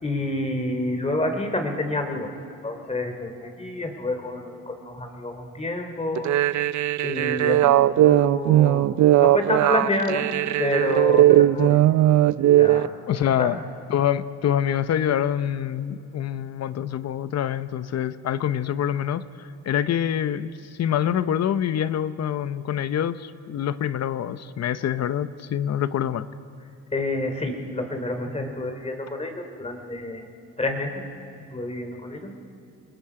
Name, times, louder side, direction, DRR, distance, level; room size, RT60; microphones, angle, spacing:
voice 1, 0.0-6.3 7.0-10.2 10.6-11.8 12.6-12.9 13.2-13.5 26.9-30.3 30.6-31.0 31.5-32.3, left 2 dB, 20° left, 5 dB, 3.0 m, -28 dB
sound 1, 6.2-12.9, right 14 dB, 70° right, 0.5 m, -18 dB
voice 2, 13.1-13.6 13.9-26.3, left 10 dB, 60° left, 13 dB, 0.9 m, -26 dB
29.5 x 19.5 x 5.0 m, 2.5 s
cardioid pair, 90°, 30 cm